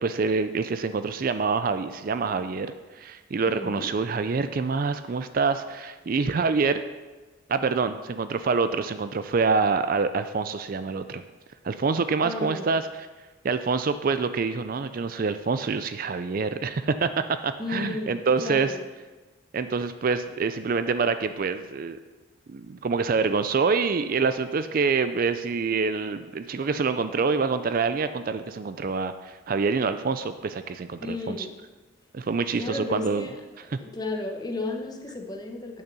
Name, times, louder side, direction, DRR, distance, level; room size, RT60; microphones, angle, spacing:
voice 1, 0.0-6.8 7.5-11.2 11.6-13.1 13.4-18.7 19.5-22.0 22.5-31.5 32.1-33.3 33.7-33.8, right 4 dB, 45° right, 11 dB, 0.4 m, -26 dB
voice 2, 3.5-3.9 12.2-12.6 17.6-18.8 31.0-31.5 32.5-33.3 33.8-35.8, left 2 dB, 20° left, 2 dB, 1.0 m, -33 dB
8.7 x 6.5 x 6.9 m, 1.2 s
head